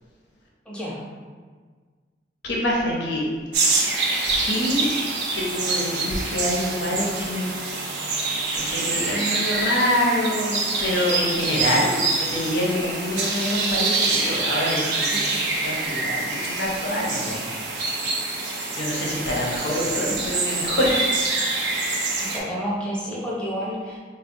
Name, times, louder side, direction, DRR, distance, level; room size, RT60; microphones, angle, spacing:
voice 1, 0.7-1.0 22.2-24.0, equal, 5° left, -7 dB, 0.7 m, -30 dB
voice 2, 2.4-3.3 4.1-4.9 5.3-7.4 8.5-17.4 17.8-18.5 18.8-21.1, left 1 dB, 85° left, -3 dB, 0.7 m, -26 dB
sound 1, 3.5-22.4, right 3 dB, 80° right, 0.6 m, -26 dB
4.4 x 2.2 x 2.6 m, 1.6 s
head